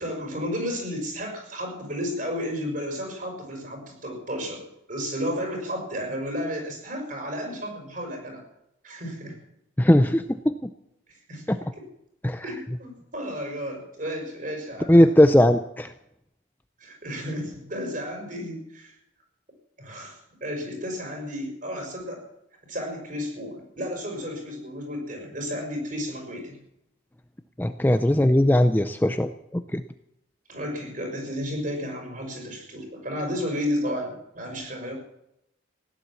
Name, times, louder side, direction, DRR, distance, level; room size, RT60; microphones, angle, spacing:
voice 1, 0.0-8.4 8.8-9.4 11.1-11.4 12.4-15.1 16.8-18.9 19.8-22.2 22.7-26.6 30.5-34.9, equal, 40° right, 3 dB, 5.6 m, -32 dB
voice 2, 9.8-10.7 11.5-11.6 12.2-12.4 14.9-15.9 27.6-29.8, left 1 dB, 10° left, 9 dB, 0.5 m, -19 dB
17.0 x 11.5 x 7.2 m, 0.79 s
head